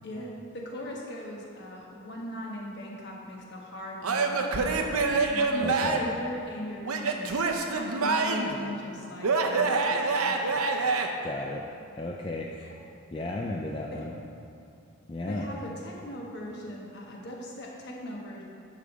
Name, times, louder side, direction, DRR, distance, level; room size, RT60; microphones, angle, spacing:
voice 1, 0.0-5.0 5.3-10.9 12.6-12.7 13.9-14.0 15.3-18.4, left 1 dB, 50° left, -3 dB, 1.3 m, -40 dB
Male speech man speaking / Yell / Laughter, 4.0-6.2 6.8-8.6 9.2-11.1, right 4 dB, 85° right, 0.6 m, -26 dB
voice 2, 5.6-6.0 11.2-11.6 12.0-12.5 13.1-14.1 15.1-15.5, left 2 dB, 20° left, -1 dB, 0.3 m, -34 dB
10.5 x 3.5 x 6.3 m, 2.6 s
head